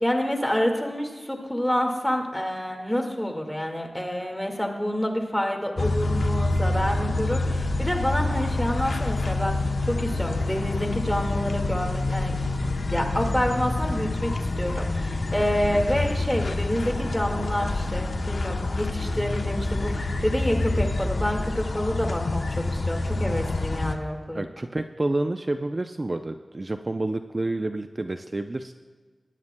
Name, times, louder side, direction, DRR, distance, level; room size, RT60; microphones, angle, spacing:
voice 1, 0.0-24.4, equal, 5° left, 2 dB, 1.8 m, -28 dB
sound 1, 5.8-23.9, left 2 dB, 65° left, 0.8 m, -27 dB
voice 2, 24.3-28.7, right 2 dB, 40° right, 7 dB, 0.5 m, -29 dB
20.5 x 11.0 x 2.2 m, 1.4 s
wide cardioid pair, 60°, 0 cm